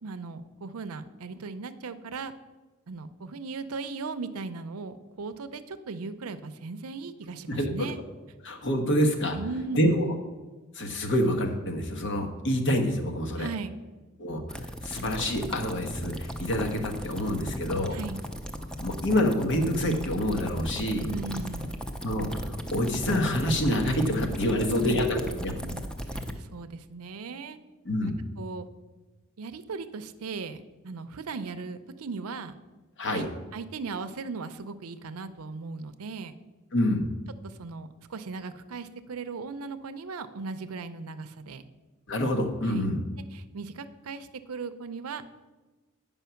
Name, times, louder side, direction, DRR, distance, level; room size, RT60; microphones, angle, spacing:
voice 1, 0.0-2.3 2.9-8.0 9.3-10.0 13.4-13.8 17.9-18.2 21.1-21.8 24.5-25.8 26.3-27.6 28.4-28.7 29.4-32.6 33.1-33.3 33.5-36.4 37.4-41.6 42.7-42.9 43.3-45.2, right 4 dB, 90° right, 11 dB, 0.6 m, -37 dB
voice 2, 7.5-7.9 8.4-9.4 9.7-10.1 10.7-13.5 14.2-18.0 18.8-21.1 22.0-25.5 27.8-28.1 33.0-33.3 36.7-37.0 42.1-43.0, left 1 dB, 60° left, 4 dB, 1.2 m, -27 dB
sound 1, 14.5-26.3, equal, 5° left, 0.6 m, -36 dB
9.2 x 5.6 x 5.7 m, 1.2 s
head